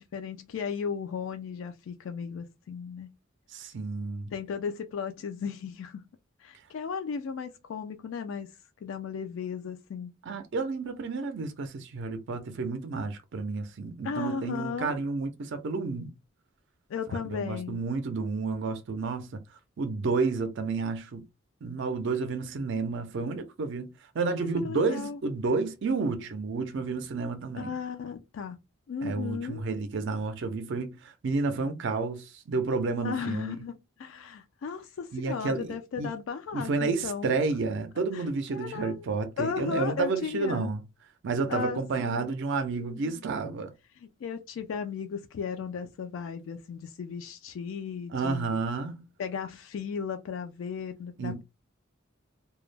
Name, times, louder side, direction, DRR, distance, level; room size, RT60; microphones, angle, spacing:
voice 1, 0.0-3.1 4.3-6.0 6.4-8.5 8.8-10.1 14.0-15.0 16.9-17.8 24.4-25.2 27.6-28.6 28.9-29.6 33.0-37.3 38.1-38.2 38.5-39.0 39.4-40.7 41.5-42.3 42.9-43.2 44.0-48.6 49.2-51.4, left 6 dB, 70° left, 0.3 m, -35 dB
voice 2, 3.5-4.3 10.2-16.1 17.1-19.4 19.8-21.2 21.6-23.9 24.1-27.7 29.0-33.5 35.1-36.1 36.5-40.8 41.2-43.7 48.1-49.1 51.2-51.4, right 4 dB, 60° right, 0.4 m, -31 dB
2.2 x 2.0 x 3.2 m
head